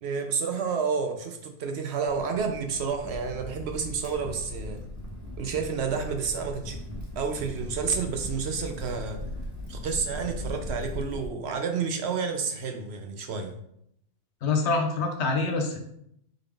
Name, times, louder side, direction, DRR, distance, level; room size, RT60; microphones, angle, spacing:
voice 1, 0.0-4.8 5.4-6.8 7.2-9.2 9.7-13.6, right 5 dB, 65° right, 5 dB, 0.8 m, -30 dB
Crackle, 2.0-11.3, left 1 dB, 15° left, 0.7 m, -38 dB
voice 2, 14.4-15.8, left 3 dB, 70° left, 4 dB, 0.9 m, -25 dB
3.8 x 3.6 x 3.4 m, 0.74 s
omnidirectional pair, 1.3 m